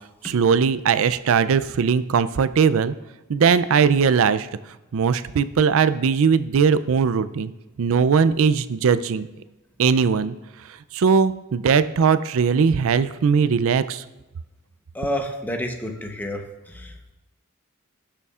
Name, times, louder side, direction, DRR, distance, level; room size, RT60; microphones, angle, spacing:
voice 1, 0.2-2.9 3.3-4.5 4.9-7.5 7.8-9.3 9.8-10.3 10.9-14.0, right 6 dB, 65° right, 14 dB, 0.4 m, -19 dB
voice 2, 14.9-16.9, left 1 dB, 10° left, 3 dB, 0.9 m, -29 dB
17.5 x 6.8 x 2.4 m, 1.1 s
head